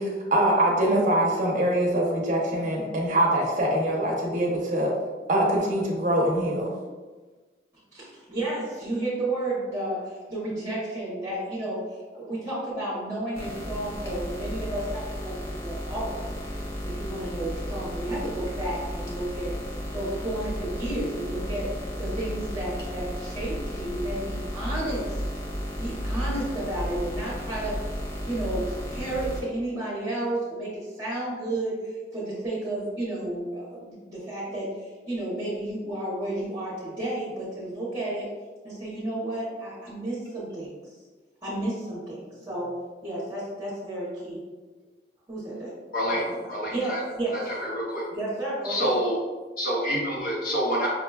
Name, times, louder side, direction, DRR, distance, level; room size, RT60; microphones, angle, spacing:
voice 1, 0.0-4.9 5.3-6.7, right 1 dB, 45° right, -2 dB, 0.7 m, -23 dB
voice 2, 7.9-19.6 19.9-21.7 22.0-25.2 25.8-27.8 28.2-38.3 38.6-40.7 41.4-42.7 43.0-44.4 45.3-45.7 46.1-46.4 46.7-47.4 48.1-48.9, right 1 dB, 20° right, -11 dB, 0.9 m, -32 dB
sound 1, 13.3-29.4, equal, 15° left, 0.5 m, -33 dB
voice 3, 45.9-47.0 47.6-48.0 48.6-49.2 49.6-50.9, equal, 50° left, -4 dB, 0.8 m, -27 dB
5.6 x 2.2 x 2.3 m, 1.3 s
head